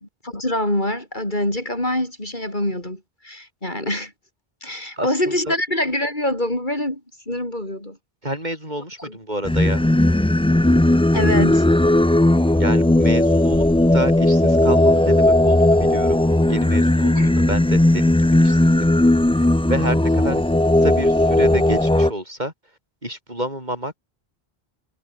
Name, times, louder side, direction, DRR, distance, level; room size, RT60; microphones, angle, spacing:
voice 1, 0.2-4.1 4.6-7.0 7.3-8.0 9.0-9.2 11.1-11.6 17.1-17.3, left 1 dB, 50° left, 6.7 m, -25 dB
voice 2, 8.2-9.8 12.6-13.7 13.9-16.2 16.5-18.9 19.7-20.4 20.8-22.5 23.0-23.9, right 1 dB, 45° right, 8.4 m, -29 dB
Singing, 9.4-22.1, left 1 dB, 10° left, 0.4 m, -16 dB
omnidirectional pair, 1.0 m